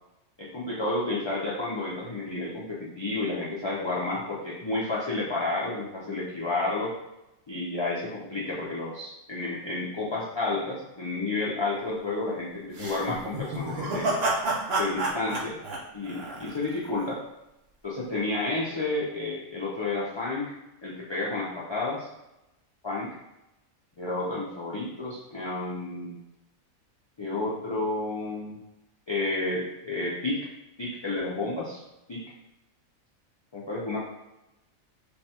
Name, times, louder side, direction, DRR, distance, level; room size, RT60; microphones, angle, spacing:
voice 1, 0.4-6.9 7.5-14.2 14.8-15.6 15.9-17.2 17.8-20.5 20.8-22.1 22.8-23.1 24.0-26.2 27.2-28.6 29.1-30.5 30.8-31.8 32.1-32.2 33.5-34.0, left 2 dB, 40° left, -7 dB, 0.3 m, -31 dB
sound 1, 12.7-16.9, right 2 dB, 55° right, 0.8 m, -30 dB
3.2 x 2.3 x 4.2 m, 0.92 s
omnidirectional pair, 1.4 m